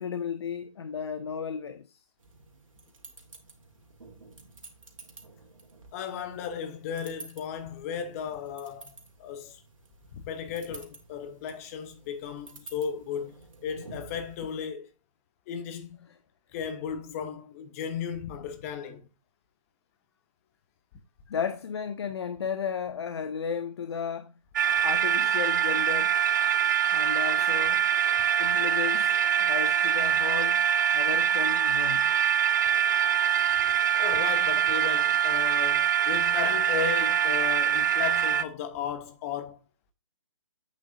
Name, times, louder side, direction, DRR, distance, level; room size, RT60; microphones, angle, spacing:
voice 1, 0.0-2.0 21.3-24.3 24.8-26.2 26.9-27.8 28.4-30.7 30.9-32.1, left 7 dB, 50° left, 0.6 m, -34 dB
sound 1, 2.2-14.7, right 3 dB, 75° right, 2.1 m, -51 dB
voice 2, 5.9-9.6 10.1-13.4 13.6-14.9 15.5-16.1 16.5-19.1 34.0-39.6, left 7 dB, 25° left, 1.0 m, -35 dB
sound 2, 24.6-38.4, right 9 dB, 35° right, 0.4 m, -24 dB
8.3 x 6.4 x 2.6 m
figure-of-eight pair, 140°, 17 cm